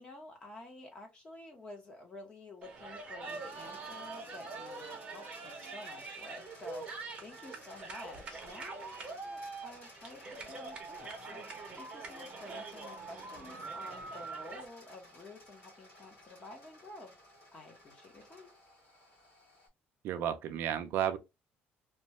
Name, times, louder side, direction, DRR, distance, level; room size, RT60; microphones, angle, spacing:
voice 1, 0.0-17.1 17.5-18.5, left 2 dB, 25° left, 0.9 m, -51 dB
sound 1, 2.6-14.6, right 3 dB, 25° right, 0.8 m, -44 dB
sound 2, 3.2-19.7, left 1 dB, 55° left, 1.7 m, -56 dB
voice 2, 20.0-21.2, right 10 dB, 60° right, 0.4 m, -32 dB
2.9 x 2.2 x 2.8 m
cardioid pair, 170°, 4 cm